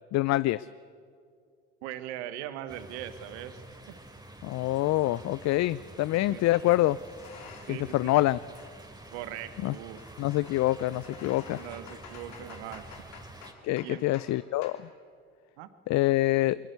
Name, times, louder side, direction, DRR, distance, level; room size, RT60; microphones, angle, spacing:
voice 1, 0.1-0.7 4.4-7.0 7.7-8.4 9.6-9.7 10.2-11.6 13.6-14.8 15.9-16.6, left 17 dB, 55° left, 18 dB, 0.5 m, -26 dB
voice 2, 1.8-3.9 6.3-6.5 7.7-8.1 9.1-10.0 11.5-13.0 13.8-14.0 15.6-15.7, right 11 dB, 80° right, 12 dB, 1.4 m, -40 dB
sound 1, 2.7-13.5, right 2 dB, 10° right, 3.1 m, -48 dB
sound 2, 5.1-5.3 6.4-7.9 8.2-14.4 14.6-14.8, left 7 dB, 75° left, 3.2 m, -51 dB
22.0 x 21.0 x 8.2 m, 2.2 s
hypercardioid pair, 55°, 33 cm